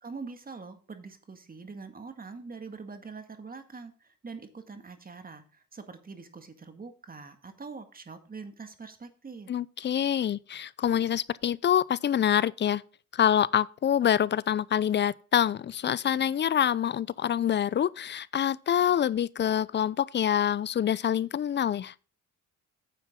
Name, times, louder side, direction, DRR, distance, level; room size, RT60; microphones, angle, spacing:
voice 1, 0.0-9.5, right 4 dB, 30° right, 1.8 m, -44 dB
voice 2, 9.5-12.8 13.1-21.9, left 9 dB, 35° left, 0.5 m, -26 dB
9.7 x 7.2 x 3.6 m
cardioid pair, 90°, 30 cm